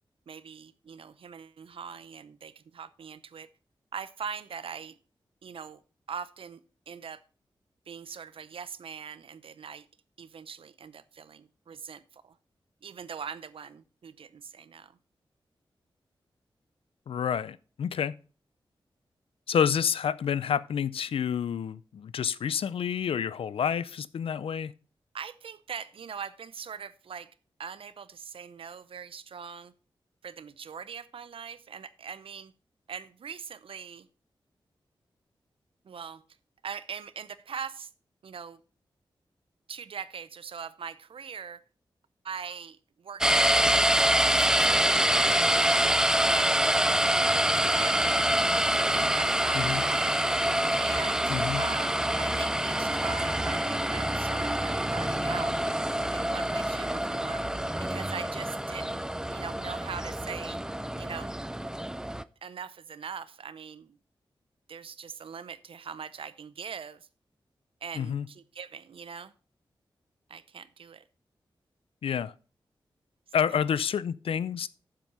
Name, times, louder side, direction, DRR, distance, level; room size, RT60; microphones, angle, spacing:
voice 1, 0.3-3.5 3.9-5.0 5.4-5.8 6.1-6.6 6.9-7.2 7.9-9.9 10.2-12.4 12.8-15.0 25.1-27.3 27.6-29.7 30.2-32.5 32.9-34.1 35.8-36.2 36.6-37.9 38.2-38.6 39.7-41.6 42.2-45.6 46.3-46.5 47.5-50.3 50.8-55.6 56.1-57.5 57.8-59.0 59.3-60.6 61.0-61.3 62.4-64.0 64.7-67.1 67.8-69.3 70.3-71.0 73.5-73.6, right 6 dB, 75° right, 0.6 m, -42 dB
voice 2, 17.1-18.1 19.5-24.7 49.5-49.9 51.3-51.6 67.9-68.3 72.0-72.3 73.3-74.7, left 8 dB, 85° left, 0.4 m, -29 dB
sound 1, 43.2-62.2, right 1 dB, 5° right, 0.4 m, -26 dB
7.6 x 7.4 x 5.4 m
cardioid pair, 65°, 9 cm